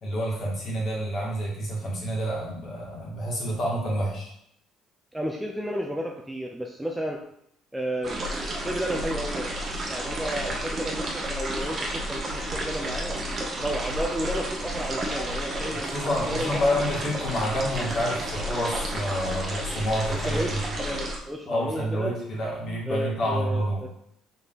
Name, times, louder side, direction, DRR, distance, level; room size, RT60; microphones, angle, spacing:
voice 1, 0.0-4.3 15.7-20.6 21.5-23.9, equal, 40° left, -4 dB, 2.2 m, -28 dB
voice 2, 5.1-7.2 7.7-9.5 9.9-13.3 13.6-16.7 20.1-22.2 22.9-23.9, equal, 5° right, 1 dB, 0.4 m, -32 dB
sound 1, 8.0-21.2, right 1 dB, 25° right, 1.1 m, -31 dB
5.9 x 4.6 x 4.0 m, 0.73 s
cardioid pair, 175°, 0 cm